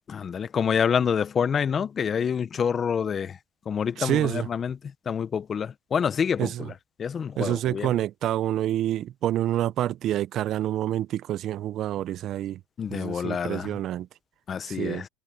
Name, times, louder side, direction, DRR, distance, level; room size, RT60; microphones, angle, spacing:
voice 1, 0.1-3.4 3.7-4.8 5.1-6.7 7.0-7.9 12.8-13.7 14.5-15.1, left 7 dB, 30° left, 0.9 m, -27 dB
voice 2, 4.0-4.5 6.4-6.7 7.4-12.6 12.9-14.1 14.7-15.0, right 12 dB, 45° right, 0.6 m, -27 dB
supercardioid pair, 115°, 0 cm